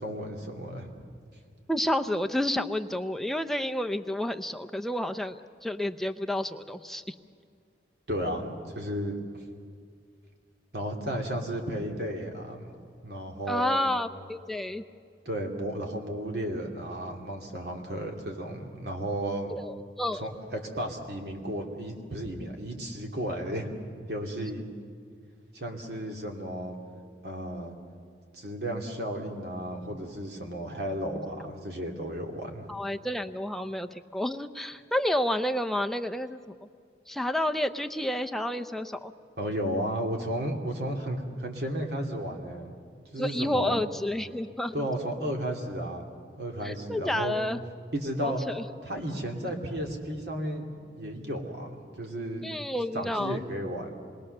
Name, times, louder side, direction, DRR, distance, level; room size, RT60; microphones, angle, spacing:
voice 1, 0.0-0.9 8.1-9.2 10.7-12.7 13.0-13.9 15.2-19.6 20.1-23.7 24.1-24.6 25.5-26.8 27.2-27.7 28.3-32.7 39.4-42.7 43.1-43.8 44.7-46.1 46.4-47.3 47.9-48.4 48.8-50.7 51.0-52.4 52.9-53.9, right 1 dB, 60° right, 1 dB, 2.8 m, -33 dB
voice 2, 1.7-7.1 13.5-14.8 19.6-20.2 32.7-36.4 37.1-39.1 43.2-44.9 46.6-47.6 48.2-48.6 52.4-53.4, left 1 dB, ahead, 6 dB, 0.6 m, -30 dB
26.5 x 21.0 x 6.7 m, 2.2 s
head